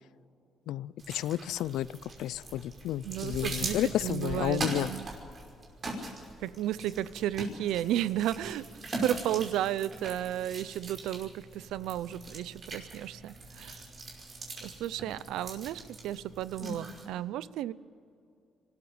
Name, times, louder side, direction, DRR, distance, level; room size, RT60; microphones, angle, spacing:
voice 1, 0.7-1.9 2.2-4.9, left 13 dB, 85° left, 20 dB, 0.5 m, -31 dB
sound 1, 1.0-17.0, right 2 dB, 45° right, 5.5 m, -41 dB
voice 2, 3.0-5.1 6.4-8.7 9.0-13.8 14.6-17.7, right 12 dB, 90° right, 18 dB, 0.6 m, -33 dB
24.0 x 14.0 x 8.8 m, 2.5 s
cardioid pair, 90°, 0 cm